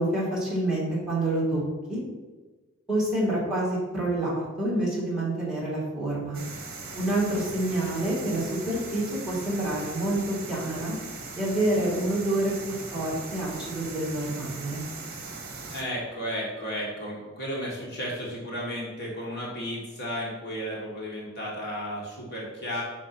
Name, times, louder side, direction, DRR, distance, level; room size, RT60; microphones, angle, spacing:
voice 1, 0.0-1.6 1.9-2.0 2.9-6.4 7.0-11.0 11.4-14.8, right 1 dB, 5° right, -7 dB, 2.4 m, -27 dB
sound 1, 6.3-15.8, right 3 dB, 45° right, 1.1 m, -39 dB
voice 2, 15.7-22.8, equal, 50° left, -4 dB, 1.7 m, -34 dB
5.3 x 4.8 x 6.0 m, 1.2 s
head